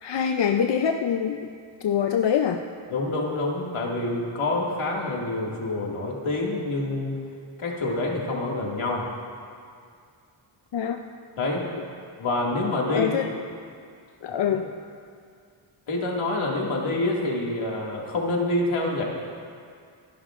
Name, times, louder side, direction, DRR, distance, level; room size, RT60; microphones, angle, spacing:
voice 1, 0.0-1.5 1.8-2.6 10.7-11.0 12.9-13.3 14.2-14.7, left 8 dB, 60° left, 5 dB, 0.6 m, -24 dB
voice 2, 2.9-7.2 7.6-9.1 11.4-11.7 12.2-13.1 14.5-14.6 15.9-19.0, left 2 dB, 80° left, -2 dB, 2.2 m, -27 dB
25.5 x 11.5 x 2.5 m, 2.3 s
wide cardioid pair, 115°, 48 cm